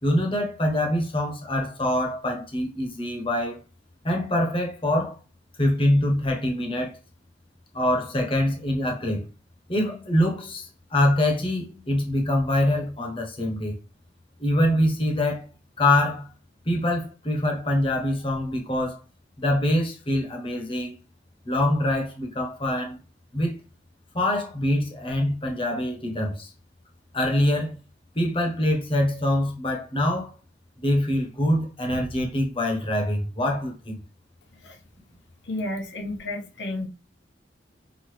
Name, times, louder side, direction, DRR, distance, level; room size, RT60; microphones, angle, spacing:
voice 1, 0.0-3.6 4.0-5.1 5.6-7.0 7.7-9.2 9.7-13.8 14.4-15.5 15.8-16.3 16.6-19.0 19.4-20.9 21.5-23.0 23.3-23.6 24.1-26.5 27.1-27.8 28.1-30.3 30.8-34.0, left 1 dB, 30° left, 1.0 m, -24 dB
voice 2, 35.4-36.9, left 2 dB, 80° left, 0.9 m, -31 dB
6.0 x 2.7 x 3.2 m
head